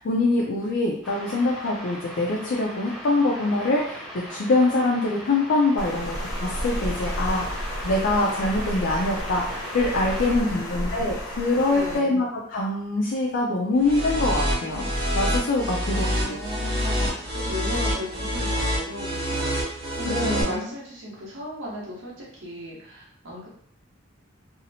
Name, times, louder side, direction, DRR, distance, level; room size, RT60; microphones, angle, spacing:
voice 1, 0.0-14.9 15.1-16.4 20.1-20.7, left 2 dB, 60° left, -3 dB, 0.4 m, -24 dB
sound 1, 1.0-10.4, equal, ahead, 0.5 m, -39 dB
Water, 5.8-12.0, equal, 80° left, 0.8 m, -32 dB
voice 2, 10.1-10.8 11.7-12.2 15.9-23.5, left 1 dB, 75° right, -5 dB, 0.9 m, -36 dB
sound 2, 13.8-20.4, equal, 25° right, 1.0 m, -27 dB
2.8 x 2.0 x 2.7 m, 0.66 s
head